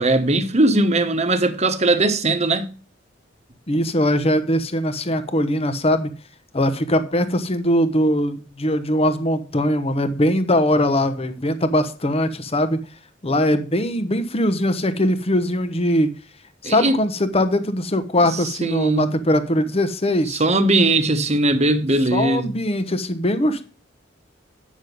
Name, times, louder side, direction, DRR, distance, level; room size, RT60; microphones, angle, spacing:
voice 1, 0.0-2.7 16.6-17.0 18.6-19.1 20.3-22.5, right 2 dB, 35° right, 1.1 m, -19 dB
voice 2, 3.7-6.1 6.5-12.8 13.2-16.1 16.6-20.4 22.1-23.6, left 1 dB, 30° left, 0.9 m, -21 dB
9.3 x 6.3 x 5.3 m
head